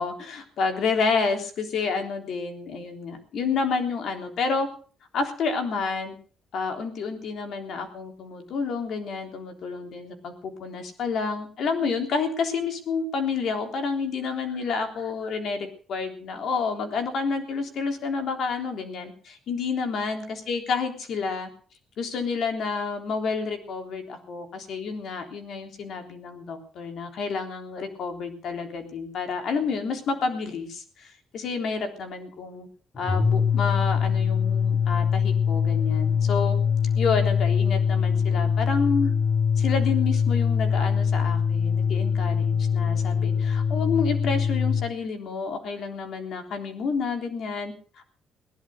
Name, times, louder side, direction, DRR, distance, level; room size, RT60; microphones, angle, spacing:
voice 1, 0.0-4.7 5.1-6.2 6.5-21.5 22.0-32.7 33.0-36.6 37.0-39.1 39.6-47.7, left 5 dB, 70° left, 6 dB, 3.5 m, -29 dB
sound 1, 32.9-44.9, left 6 dB, 40° left, 4.9 m, -23 dB
18.5 x 11.5 x 6.4 m, 0.44 s
cardioid pair, 90°, 0 cm